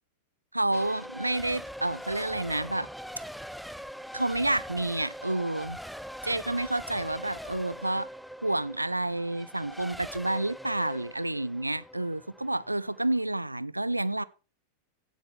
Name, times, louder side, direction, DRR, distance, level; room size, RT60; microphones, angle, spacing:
voice 1, 0.5-2.9 4.1-5.8 6.2-8.1 8.4-14.2, right 1 dB, 85° right, 0.5 m, -29 dB
Race car auto racing / Accelerating revving vroom / Mechanisms, 0.7-13.2, equal, ahead, 0.5 m, -42 dB
16.5 x 7.9 x 3.3 m
figure-of-eight pair, 90°, 0 cm